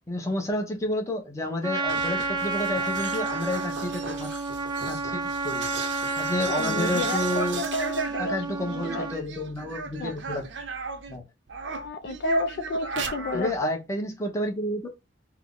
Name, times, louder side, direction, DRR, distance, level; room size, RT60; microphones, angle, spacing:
voice 1, 0.1-4.4 4.9-5.7 6.2-7.6 8.2-10.4 11.1-11.2 13.3-14.9, left 1 dB, 15° left, 0.8 m, -30 dB
Trumpet, 1.6-9.2, right 3 dB, 25° right, 0.5 m, -30 dB
sound 1, 1.8-11.2 11.5-13.6, right 5 dB, 85° right, 0.6 m, -37 dB
voice 2, 6.5-9.1 10.0-10.1 11.8-13.7, left 1 dB, 65° left, 0.4 m, -30 dB
3.4 x 2.0 x 3.7 m
head